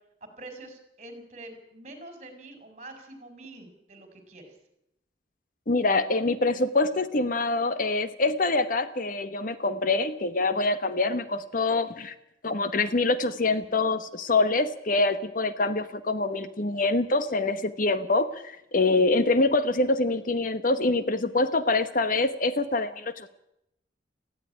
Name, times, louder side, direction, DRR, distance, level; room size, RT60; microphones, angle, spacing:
voice 1, 0.2-4.6, right 2 dB, 40° right, 7 dB, 5.0 m, -45 dB
voice 2, 5.7-12.1 12.4-23.3, left 3 dB, 50° left, 12 dB, 1.1 m, -25 dB
17.5 x 15.0 x 9.9 m, 0.81 s
head